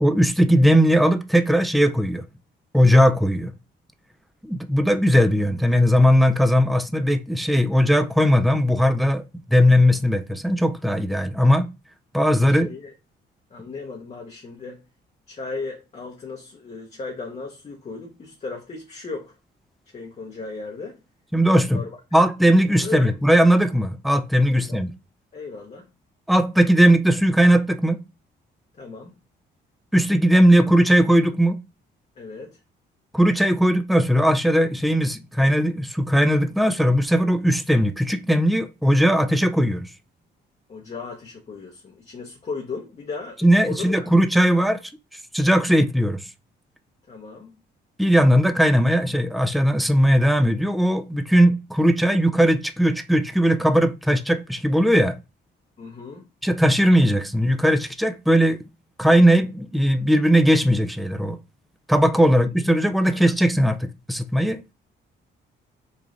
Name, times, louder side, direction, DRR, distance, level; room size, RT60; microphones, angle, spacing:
voice 1, 0.0-2.2 2.7-3.5 4.4-9.2 9.5-11.7 12.1-12.7 21.3-21.8 22.1-24.9 26.3-28.0 29.9-31.6 33.1-39.9 43.4-44.9 45.3-46.2 48.0-55.2 56.4-58.7 59.0-61.4 61.9-64.6, equal, ahead, 0.3 m, -18 dB
voice 2, 12.5-12.9 13.5-14.8 15.3-19.4 19.9-21.0 21.7-21.9 22.8-23.1 24.5-24.8 25.3-25.9 28.7-29.2 32.2-32.6 40.7-44.1 47.1-47.5 55.8-56.3 62.3-62.4 63.1-63.2, left 4 dB, 35° left, 0.7 m, -36 dB
3.2 x 2.3 x 3.6 m
cardioid pair, 90°, 20 cm